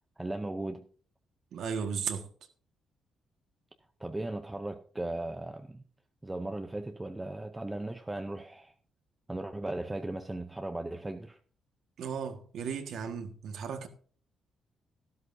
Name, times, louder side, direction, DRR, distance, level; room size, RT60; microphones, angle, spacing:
voice 1, 0.2-0.9 4.0-5.8 6.2-8.7 9.3-11.4, right 2 dB, 10° right, 0.6 m, -37 dB
voice 2, 1.5-2.3 12.0-13.9, right 6 dB, 60° right, 1.6 m, -35 dB
13.5 x 12.5 x 2.7 m
cardioid pair, 180°, 0 cm